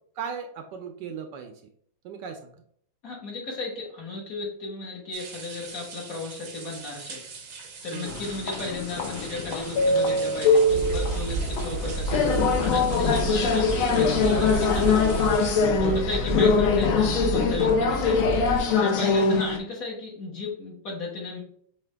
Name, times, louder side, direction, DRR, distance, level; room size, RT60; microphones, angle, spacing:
voice 1, 0.2-1.5 2.0-2.5 7.9-8.2 12.2-12.7 13.1-13.2 15.8-16.1 18.7-19.0, right 7 dB, 75° right, 5 dB, 1.1 m, -37 dB
voice 2, 3.0-7.2 7.8-12.2 12.6-15.3 15.8-18.4 18.8-21.4, left 2 dB, 50° left, -3 dB, 1.7 m, -35 dB
sound 1, 5.1-15.7, right 5 dB, 55° right, 0.8 m, -43 dB
sound 2, 8.1-19.6, left 4 dB, 65° left, 0.8 m, -23 dB
sound 3, 10.7-18.6, right 2 dB, 85° left, 2.9 m, -31 dB
5.7 x 2.7 x 3.3 m, 0.63 s
omnidirectional pair, 2.1 m